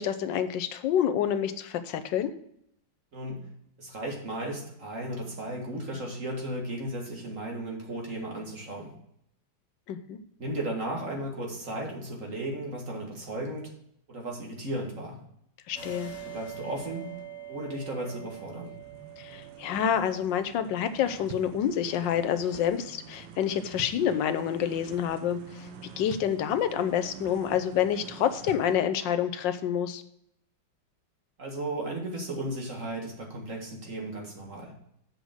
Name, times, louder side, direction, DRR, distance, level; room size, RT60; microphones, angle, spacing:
voice 1, 0.0-2.3 9.9-10.2 15.7-16.1 19.2-25.7 26.0-30.0, left 9 dB, 75° left, 10 dB, 1.3 m, -28 dB
voice 2, 3.1-3.5 3.8-8.9 10.4-13.7 14.1-15.2 16.3-17.1 17.5-18.8 31.4-34.7, right 1 dB, 45° right, 0 dB, 2.0 m, -35 dB
sound 1, 15.8-22.9, right 9 dB, 45° left, 1.9 m, -45 dB
sound 2, 17.2-17.3 17.8-28.8, right 6 dB, 80° right, 1.5 m, -46 dB
7.7 x 5.1 x 6.3 m, 0.73 s
omnidirectional pair, 2.1 m